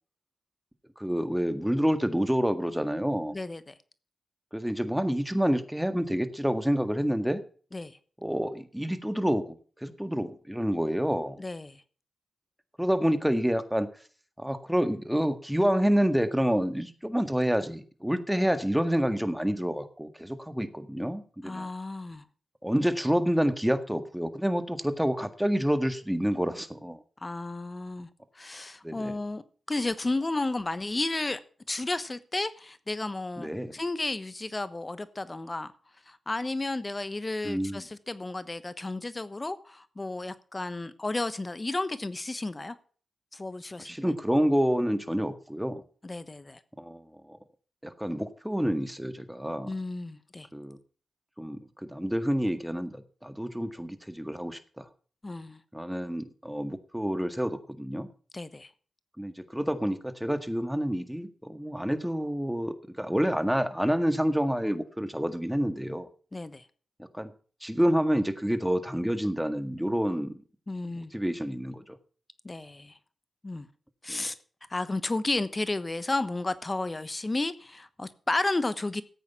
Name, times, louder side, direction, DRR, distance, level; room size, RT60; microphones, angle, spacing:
voice 1, 1.0-3.3 4.5-7.4 8.2-11.4 12.8-13.9 14.4-21.7 22.6-27.0 28.8-29.1 33.4-33.7 37.4-37.8 43.8-45.8 46.8-47.4 47.8-49.7 50.5-50.8 51.4-54.9 55.7-58.1 59.2-66.1 67.0-67.3 67.6-70.4 71.1-72.0 74.1-74.2, equal, 5° right, 1.8 m, -28 dB
voice 2, 3.3-3.7 7.7-8.0 11.4-11.8 21.4-22.2 27.2-28.1 28.3-31.4 31.7-35.7 36.1-42.8 43.3-44.1 46.0-46.6 49.6-50.5 55.2-55.6 58.3-58.7 66.3-66.6 70.7-71.1 72.4-73.0 73.4-73.7 74.0-74.3 74.7-79.0, left 2 dB, 30° left, 1.1 m, -32 dB
14.0 x 8.5 x 5.8 m
supercardioid pair, 40°, 0 cm